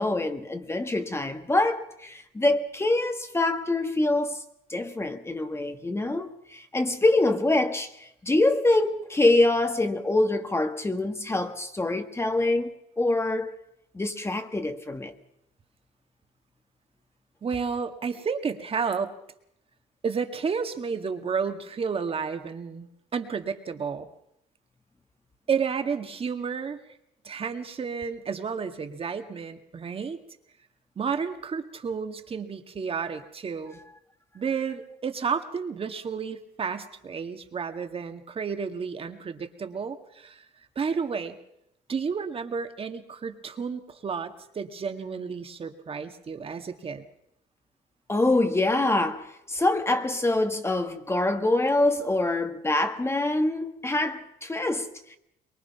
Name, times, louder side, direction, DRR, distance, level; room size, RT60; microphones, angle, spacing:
voice 1, 0.0-4.4 4.7-13.5 13.9-15.1 48.1-55.2, left 2 dB, 15° left, 1.4 m, -25 dB
voice 2, 17.4-19.1 20.0-24.1 25.5-26.8 27.2-30.2 31.0-33.8 34.3-40.4 40.8-41.4 41.9-47.0, right 6 dB, 35° right, 1.9 m, -31 dB
23.5 x 22.0 x 5.8 m
cardioid pair, 110°, 17 cm